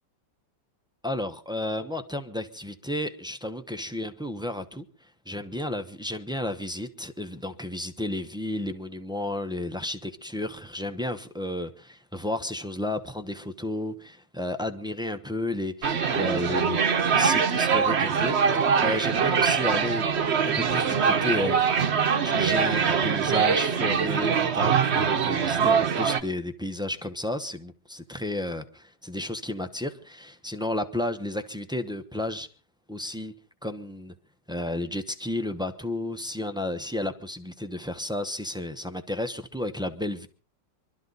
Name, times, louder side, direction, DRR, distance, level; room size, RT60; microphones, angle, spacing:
voice 1, 1.0-4.8 5.3-16.8 17.1-21.6 22.2-24.8 25.0-32.5 32.9-33.3 33.6-34.1 34.5-40.3, left 1 dB, 5° right, 0.4 m, -32 dB
sound 1, 15.8-26.2, right 6 dB, 45° right, 1.0 m, -23 dB
24.0 x 12.5 x 4.0 m
omnidirectional pair, 2.0 m